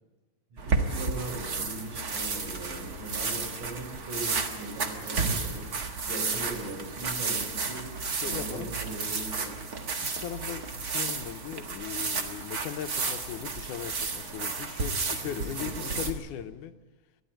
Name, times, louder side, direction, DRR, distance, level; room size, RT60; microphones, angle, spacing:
voice 1, 0.5-5.7 6.1-7.8 8.2-9.6 15.2-16.1, right 2 dB, 85° right, 1 dB, 7.8 m, -39 dB
sound 1, 0.6-16.1, right 4 dB, 40° right, 1.4 m, -32 dB
voice 2, 8.1-8.7 10.0-16.8, left 10 dB, 80° left, 8 dB, 2.3 m, -38 dB
23.0 x 14.0 x 9.0 m, 1.2 s
omnidirectional pair, 3.6 m